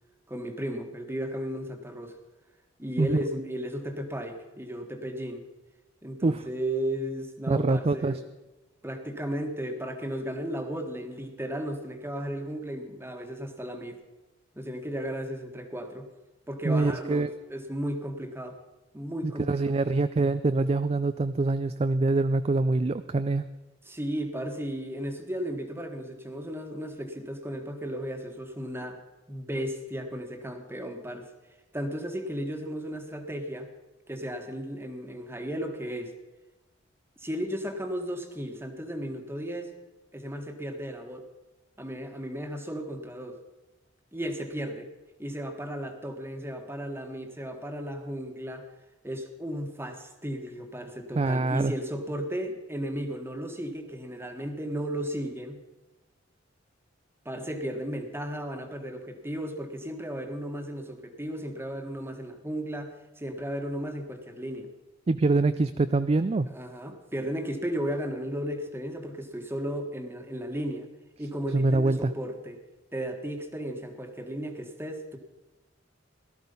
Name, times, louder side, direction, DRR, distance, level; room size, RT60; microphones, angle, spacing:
voice 1, 0.3-2.2 2.8-5.4 6.0-8.2 8.8-14.0 14.5-16.1 16.5-18.6 18.9-19.8 23.8-29.0 29.3-31.3 31.7-33.7 34.1-36.1 37.2-39.7 40.1-41.3 41.8-43.4 44.1-44.9 45.2-48.7 49.0-55.6 57.2-64.7 66.5-70.9 71.2-72.6 72.9-75.2, equal, 10° right, 5 dB, 1.5 m, -35 dB
voice 2, 7.5-8.2 16.6-17.3 19.2-23.4 51.2-51.7 65.1-66.5 71.5-72.1, right 3 dB, 30° right, 11 dB, 0.4 m, -25 dB
17.0 x 13.0 x 5.4 m, 1.1 s
head